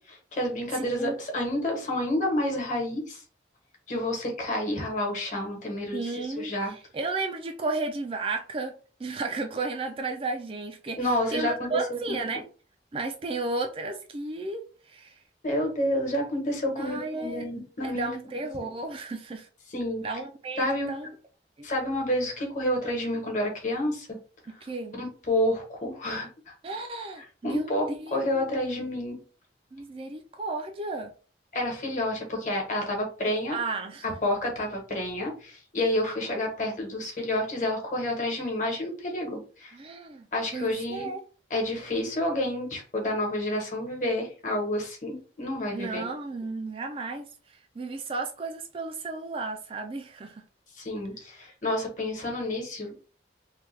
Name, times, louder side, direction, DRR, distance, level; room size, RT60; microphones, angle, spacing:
voice 1, 0.1-3.2 3.9-6.7 11.0-11.7 12.1-12.2 15.4-18.1 18.6-18.7 19.7-20.0 20.6-20.9 21.6-24.2 25.0-26.5 27.4-29.2 31.5-33.6 34.0-39.7 40.3-41.1 41.5-46.0 50.8-53.0, left 1 dB, 45° left, 1.2 m, -29 dB
voice 2, 0.7-1.2 5.9-8.7 9.0-12.5 12.9-15.2 16.8-19.5 20.0-21.2 21.6-21.7 24.5-24.9 26.6-27.7 28.0-28.5 28.8-28.9 29.7-31.1 33.5-34.0 39.7-40.3 40.5-41.2 45.7-50.5, right 3 dB, 30° right, 0.3 m, -34 dB
3.2 x 2.3 x 3.2 m
head